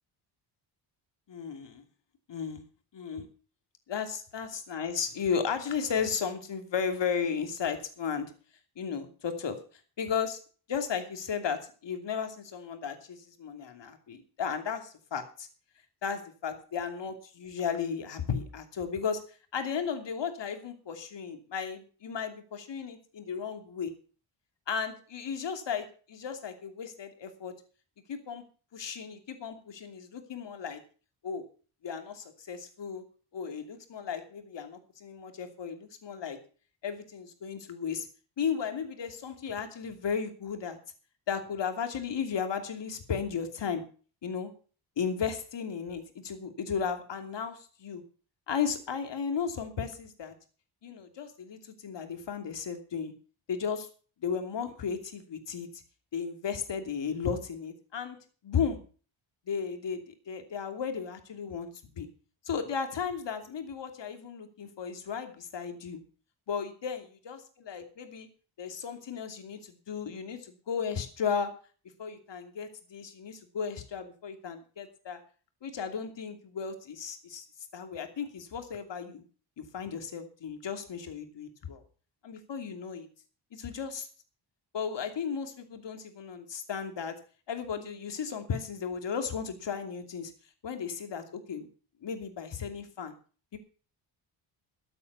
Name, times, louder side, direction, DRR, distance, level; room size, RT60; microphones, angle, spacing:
voice 1, 1.3-1.8 2.3-2.6 2.9-3.3 3.9-8.3 8.8-9.6 10.0-10.4 10.7-15.5 16.0-23.9 24.7-27.5 28.1-28.4 28.7-30.8 31.2-31.4 31.8-33.0 33.3-36.4 36.8-38.1 38.4-40.8 41.3-43.8 44.2-44.5 45.0-48.0 48.5-50.3 50.8-53.1 53.5-53.9 54.2-55.8 56.1-58.2 58.4-58.8 59.5-62.1 62.4-66.0 66.5-68.3 68.6-71.5 72.0-75.2 75.6-77.5 77.7-79.2 79.6-81.8 82.2-83.1 83.5-84.1 84.7-87.1 87.5-90.3 90.6-91.7 92.0-93.1 93.5-93.6, left 6 dB, 60° left, 7 dB, 2.9 m, -35 dB
13.5 x 8.4 x 6.9 m, 0.40 s
cardioid pair, 90°, 49 cm